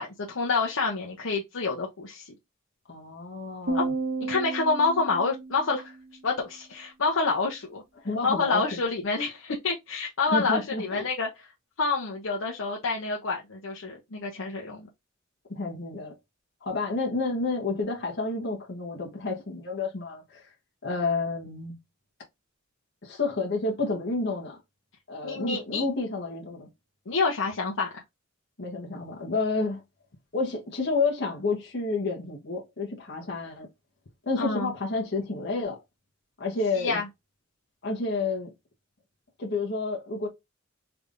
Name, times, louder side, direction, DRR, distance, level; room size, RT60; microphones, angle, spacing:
voice 1, 0.0-2.3 3.7-3.8 4.2-5.9 6.2-7.8 8.2-11.3 11.8-14.9 25.2-25.8 27.1-28.0 34.4-34.7 36.8-37.1, left 4 dB, 80° left, 0.8 m, -28 dB
voice 2, 2.9-3.9 8.0-8.6 10.3-11.1 15.5-16.1 16.6-20.4 20.8-21.8 23.0-24.6 25.1-26.7 28.6-29.8 30.3-33.7 34.2-35.8 36.4-37.0 37.8-38.5 39.4-40.3, left 3 dB, 60° left, 1.2 m, -30 dB
sound 1, 3.7-6.1, right 3 dB, 80° right, 1.1 m, -32 dB
3.5 x 3.4 x 2.5 m
head